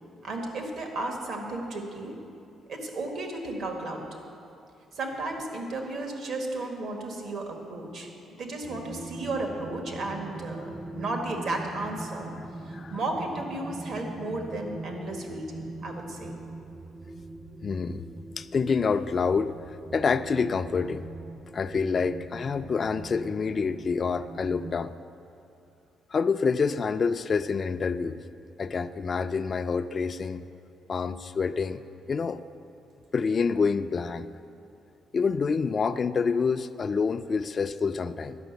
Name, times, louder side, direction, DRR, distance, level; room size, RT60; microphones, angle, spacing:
voice 1, 0.2-2.2 2.7-4.0 4.9-8.1 8.4-16.4, right 2 dB, 65° right, 2 dB, 1.6 m, -34 dB
sound 1, 8.6-24.7, right 2 dB, 25° right, 0.5 m, -42 dB
voice 2, 17.6-18.0 18.4-19.5 19.9-21.1 21.5-24.9 26.1-28.2 28.6-30.4 30.9-31.8 32.1-32.4 33.1-34.3 35.1-38.4, left 5 dB, 40° left, 10 dB, 0.3 m, -27 dB
11.5 x 5.9 x 8.0 m, 2.6 s
cardioid pair, 90°, 0 cm